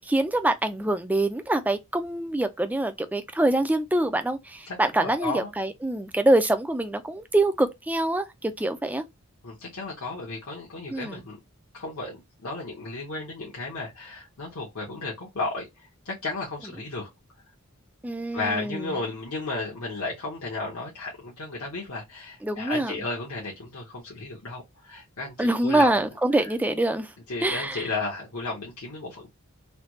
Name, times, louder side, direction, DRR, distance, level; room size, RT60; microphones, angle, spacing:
voice 1, 0.0-9.0 10.9-11.2 18.0-19.0 22.4-22.9 25.4-27.1 27.4-27.8, right 1 dB, 5° right, 0.3 m, -25 dB
voice 2, 4.7-5.5 9.4-11.4 11.7-17.1 18.3-26.0 27.3-29.3, left 3 dB, 70° left, 1.0 m, -34 dB
3.3 x 2.3 x 2.9 m
head